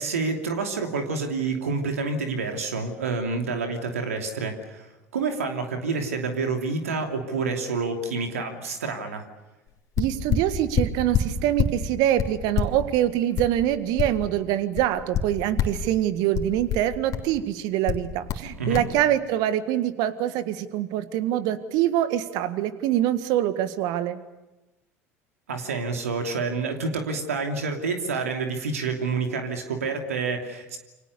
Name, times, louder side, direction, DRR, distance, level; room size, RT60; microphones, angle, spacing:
voice 1, 0.0-4.9 5.1-9.3 18.6-18.8 25.5-30.8, right 4 dB, 80° right, 4 dB, 2.9 m, -28 dB
sound 1, 9.7-9.8 10.0-11.8 12.2-14.4 14.8-15.9 16.3-17.3 17.9-18.5 18.7-18.9, left 7 dB, 50° left, 2.9 m, -26 dB
voice 2, 10.0-24.2, right 12 dB, 60° right, 12 dB, 1.8 m, -24 dB
28.5 x 25.5 x 6.9 m, 1.0 s
figure-of-eight pair, 65°, 8 cm